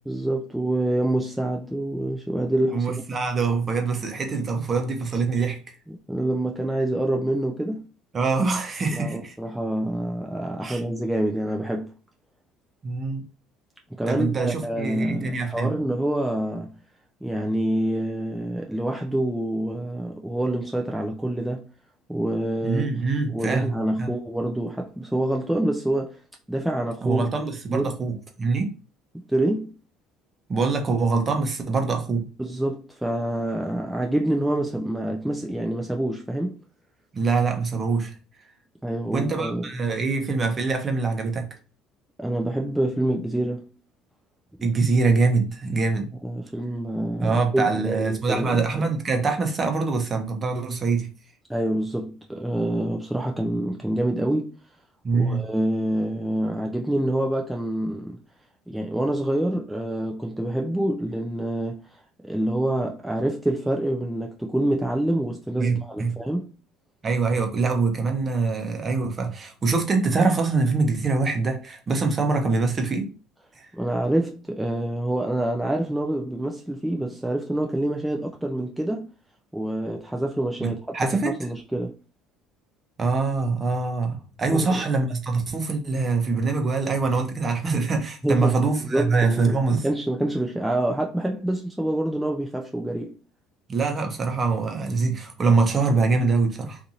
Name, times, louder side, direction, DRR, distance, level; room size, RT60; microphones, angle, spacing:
voice 1, 0.1-2.9 5.9-7.8 8.9-11.9 13.9-16.7 17.2-21.6 22.1-23.0 23.3-26.2 26.5-27.3 27.7-28.0 29.3-29.7 32.4-36.6 38.8-39.7 42.2-43.7 46.2-48.9 51.5-54.5 55.1-58.2 58.7-66.5 73.8-79.1 79.5-82.0 84.5-84.8 88.2-93.2, right 1 dB, 5° right, 0.3 m, -26 dB
voice 2, 2.7-5.6 8.1-9.3 10.6-10.8 12.8-13.2 14.1-15.7 22.6-23.7 24.0-24.1 27.0-28.7 30.5-32.3 37.1-38.2 39.1-41.5 44.6-46.1 47.2-51.1 55.0-55.4 65.6-66.2 67.0-73.1 73.6-73.7 80.6-81.3 83.0-89.9 93.7-96.8, right 4 dB, 30° right, 0.8 m, -24 dB
2.6 x 2.6 x 2.8 m
supercardioid pair, 90°, 0 cm